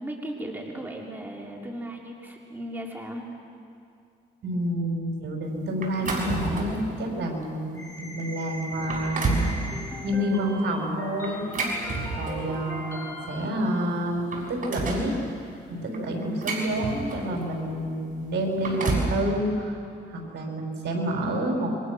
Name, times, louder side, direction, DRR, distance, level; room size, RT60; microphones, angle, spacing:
voice 1, 0.0-3.2, right 1 dB, 10° right, -1 dB, 3.5 m, -36 dB
voice 2, 4.4-9.6 10.0-11.9 12.2-15.1 15.7-21.7, equal, 60° right, 1 dB, 5.7 m, -29 dB
sound 1, 5.8-6.9 7.4-7.6 8.2-8.3 8.7-9.5 11.2-12.6 13.6-13.7 14.0-15.1 15.9-17.4 18.4-19.2, right 3 dB, 40° right, 6.6 m, -30 dB
sound 2, 7.8-13.6, left 1 dB, 15° left, 5.9 m, -39 dB
28.5 x 24.0 x 6.4 m, 2.4 s
cardioid pair, 90°, 20 cm